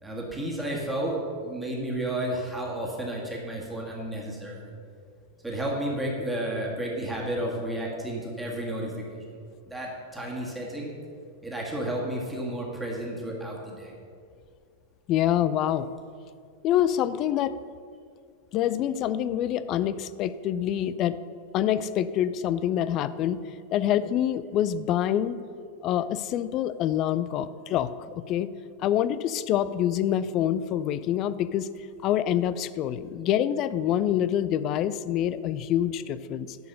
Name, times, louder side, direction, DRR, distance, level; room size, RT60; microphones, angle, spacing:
voice 1, 0.0-4.8 5.4-9.4 9.7-11.0 11.4-13.9, right 1 dB, 5° right, -3 dB, 1.7 m, -32 dB
voice 2, 15.1-15.9 16.6-17.5 18.5-21.2 21.5-23.4 23.7-25.4 25.8-28.5 28.8-31.7 32.0-36.6, left 11 dB, 35° left, 15 dB, 0.3 m, -26 dB
10.5 x 4.7 x 6.6 m, 2.2 s
figure-of-eight pair, 90°, 0 cm